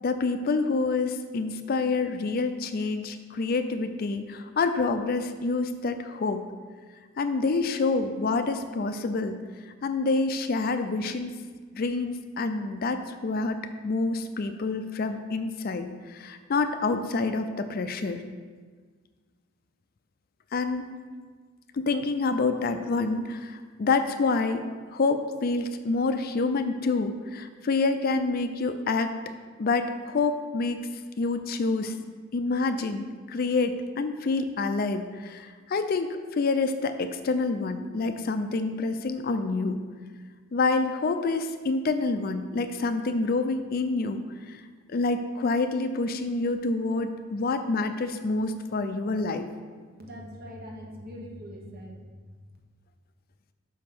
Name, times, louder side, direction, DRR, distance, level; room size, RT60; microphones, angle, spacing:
voice 1, 0.0-6.4 7.2-9.4 9.8-11.4 11.7-13.6 13.8-18.2 20.5-20.9 21.7-24.7 24.9-29.1 29.6-30.8 31.2-31.9 32.3-39.8 40.5-44.2 44.5-44.6 44.9-49.5, left 3 dB, 45° left, 9 dB, 0.4 m, -27 dB
voice 2, 50.0-52.5, equal, 50° right, -1 dB, 1.2 m, -42 dB
5.4 x 5.2 x 5.9 m, 1.5 s
head